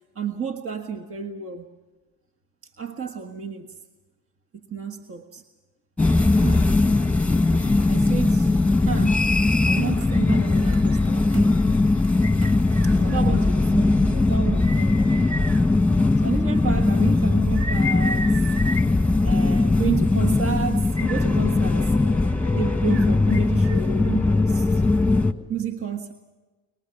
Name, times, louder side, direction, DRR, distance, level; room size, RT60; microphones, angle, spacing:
voice 1, 0.1-1.7 2.6-3.8 4.7-5.4 6.3-6.8 7.5-8.5 8.9-9.2 9.6-11.6 12.0-12.1 12.4-15.6 16.2-18.4 19.2-21.9 22.5-24.8 25.5-26.1, right 7 dB, 45° right, 1.6 m, -31 dB
sound 1, 6.0-25.3, left 3 dB, 5° left, 1.4 m, -20 dB
29.5 x 20.5 x 5.9 m
cardioid pair, 90°, 30 cm